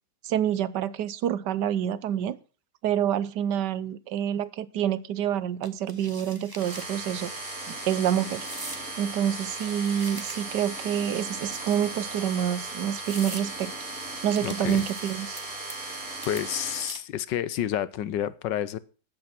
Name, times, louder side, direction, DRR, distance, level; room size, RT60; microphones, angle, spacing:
voice 1, 0.2-2.4 2.8-7.3 7.7-8.4 9.0-13.7 14.2-15.4, right 10 dB, 75° right, 18 dB, 1.4 m, -27 dB
sound 1, 5.6-6.9 7.3-7.5 8.4-8.8 9.5-10.7 11.5-12.1 12.6-12.7 13.0-13.5 14.3-15.4 15.7-16.0 16.2-17.2, right 1 dB, 15° right, 1.5 m, -42 dB
sound 2, 6.5-16.9, right 2 dB, 45° right, 5.6 m, -37 dB
voice 2, 14.4-14.8 15.8-16.0 16.2-18.8, left 11 dB, 85° left, 17 dB, 1.5 m, -30 dB
14.0 x 9.0 x 6.0 m, 0.36 s
omnidirectional pair, 1.9 m